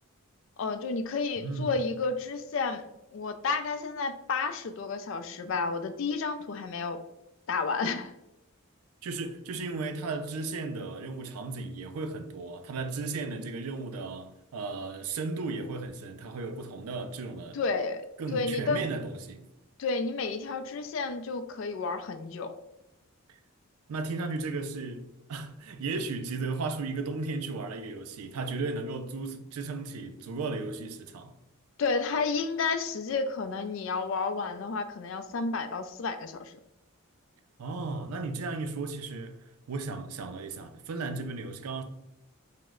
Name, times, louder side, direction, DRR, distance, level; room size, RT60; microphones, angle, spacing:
voice 1, 0.6-2.9 3.1-7.0 7.5-8.1 17.5-18.0 18.3-18.9 19.8-22.5 31.8-36.5, left 4 dB, 60° left, 0.3 m, -31 dB
voice 2, 1.4-1.7 9.0-17.6 18.2-19.5 23.9-31.3 37.6-39.4 39.7-41.8, right 3 dB, 90° right, 0.4 m, -35 dB
3.0 x 2.1 x 3.6 m
head